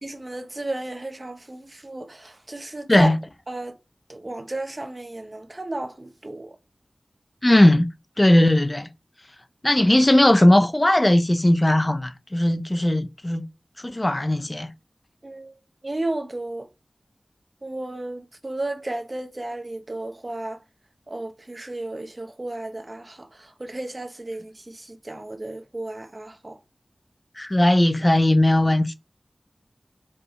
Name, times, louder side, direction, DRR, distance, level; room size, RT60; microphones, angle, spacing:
voice 1, 0.0-3.1 3.5-3.7 4.1-6.6 15.2-16.7 17.6-20.6 21.1-26.6, right 2 dB, 40° right, 1.2 m, -33 dB
voice 2, 7.4-7.9 8.2-8.9 9.6-13.5 13.8-14.7 27.4-28.9, left 1 dB, 25° left, 0.6 m, -18 dB
4.9 x 4.8 x 4.9 m
wide cardioid pair, 55°, 0 cm